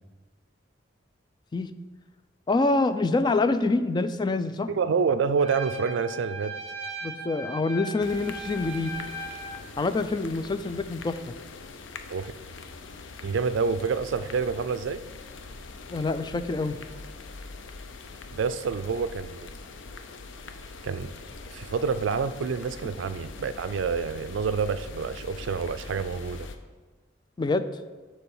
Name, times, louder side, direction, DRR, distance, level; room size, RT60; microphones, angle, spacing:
voice 1, 2.5-4.7 7.0-8.9 9.8-11.3 15.9-16.8 27.4-27.6, left 3 dB, 25° left, 11 dB, 0.3 m, -26 dB
voice 2, 4.7-6.5 12.1-12.3 13.2-15.0 18.3-19.5 20.8-21.1 21.5-26.5, right 5 dB, 70° right, 13 dB, 0.4 m, -28 dB
Trumpet, 5.4-9.6, right 2 dB, 35° right, 0.9 m, -38 dB
sound 1, 8.0-26.6, left 3 dB, 75° left, 0.5 m, -43 dB
6.9 x 4.6 x 5.5 m, 1.3 s
head